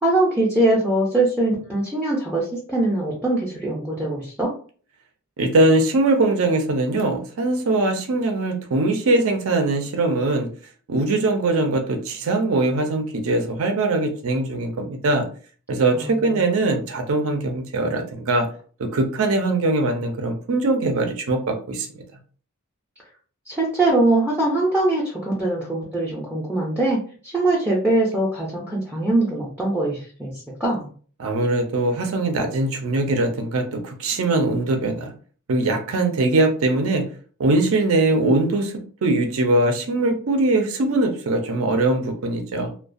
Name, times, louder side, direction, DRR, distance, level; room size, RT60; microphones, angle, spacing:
voice 1, 0.0-4.5 15.9-16.4 23.5-30.3 30.6-30.9, right 2 dB, 5° right, -5 dB, 0.4 m, -22 dB
voice 2, 5.4-10.5 10.9-15.3 15.7-18.5 18.8-22.0 31.2-35.1 35.5-37.1 37.4-42.8, right 2 dB, 65° right, 5 dB, 0.5 m, -21 dB
2.3 x 2.1 x 2.5 m, 0.43 s
head